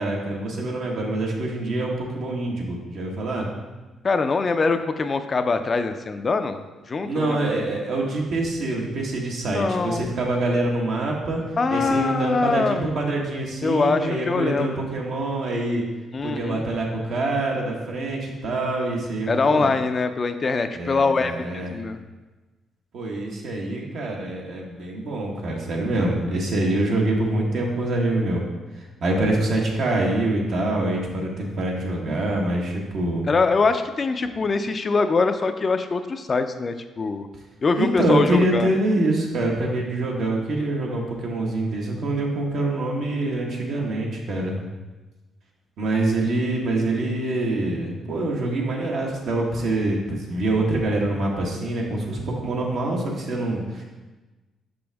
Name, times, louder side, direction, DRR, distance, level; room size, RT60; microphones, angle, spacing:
voice 1, 0.0-3.5 7.0-11.4 11.7-15.8 16.2-19.7 20.7-21.8 22.9-28.4 28.8-33.3 37.8-44.6 45.8-53.8, right 2 dB, 70° right, -1 dB, 1.3 m, -25 dB
voice 2, 4.0-6.6 6.9-7.4 9.4-10.1 11.6-12.9 13.6-14.8 16.1-16.6 19.3-22.0 33.3-37.3 37.6-38.7, left 4 dB, 35° left, 8 dB, 0.4 m, -23 dB
6.1 x 5.2 x 3.4 m, 1.2 s
cardioid pair, 90°, 0 cm